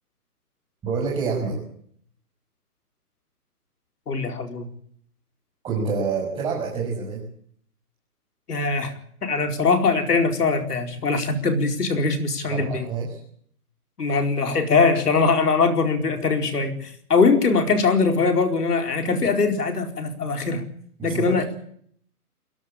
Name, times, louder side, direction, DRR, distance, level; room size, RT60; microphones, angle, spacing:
voice 1, 0.8-1.6 5.6-7.2 12.5-13.2 21.0-21.4, right 5 dB, 10° right, -4 dB, 6.4 m, -27 dB
voice 2, 4.1-4.7 8.5-8.9 9.2-12.9 14.0-20.6 21.0-21.4, left 4 dB, 85° left, 5 dB, 4.6 m, -21 dB
22.5 x 18.0 x 8.6 m, 0.63 s
hypercardioid pair, 160°, 45 cm